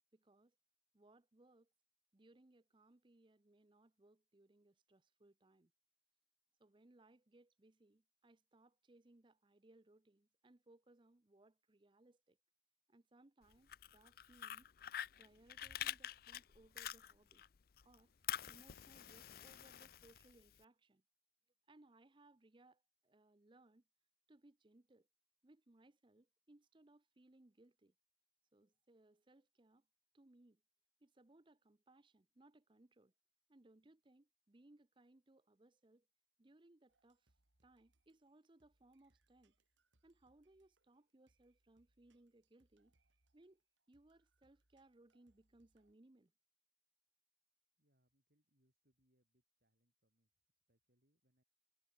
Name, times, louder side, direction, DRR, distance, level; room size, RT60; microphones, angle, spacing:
voice 1, 0.1-0.5 0.9-1.7 2.1-5.7 6.6-12.4 12.9-14.7 15.2-17.4 17.8-18.1 18.5-21.0 21.7-23.8 24.3-25.1 25.4-27.9 28.5-29.8 30.1-30.6 31.0-33.1 33.5-36.1 36.4-37.3 37.6-39.5 40.0-42.9 43.3-43.6 43.9-46.3, right 2 dB, 25° right, 0.7 m, -68 dB
Fire, 13.5-17.5 17.8-20.6, left 11 dB, 55° left, 0.5 m, -47 dB
Bass drum, 15.7-17.1, equal, 75° right, 6.7 m, -70 dB
sound 1, 36.9-45.9, right 2 dB, 90° right, 3.1 m, -82 dB
voice 2, 47.8-51.4, equal, 55° right, 7.3 m, -83 dB
head